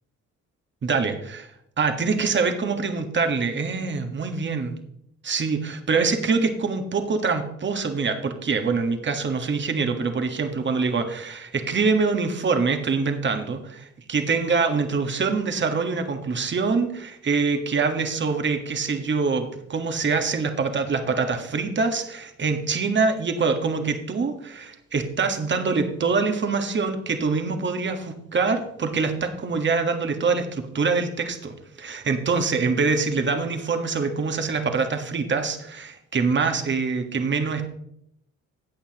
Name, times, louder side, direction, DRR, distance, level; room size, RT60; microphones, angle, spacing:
voice 1, 0.8-1.5 1.8-4.7 5.2-37.7, right 4 dB, 40° right, 6 dB, 1.4 m, -24 dB
13.5 x 8.6 x 2.9 m, 0.75 s
cardioid pair, 90°, 30 cm